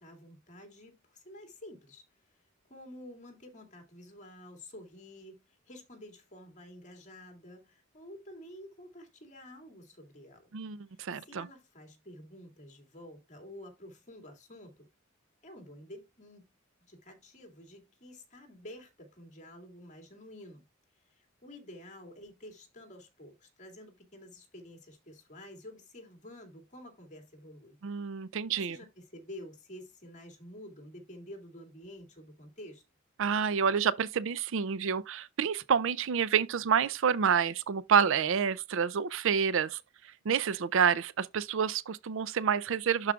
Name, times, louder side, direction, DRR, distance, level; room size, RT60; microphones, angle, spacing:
voice 1, 0.0-2.4 2.7-10.5 10.9-14.9 15.4-16.5 16.9-20.6 20.9-27.8 28.5-32.8, left 1 dB, 35° left, 2.4 m, -50 dB
voice 2, 10.5-11.5 27.8-28.8 33.2-39.8 40.3-43.1, right 7 dB, 65° right, 0.5 m, -28 dB
12.0 x 4.8 x 2.3 m
head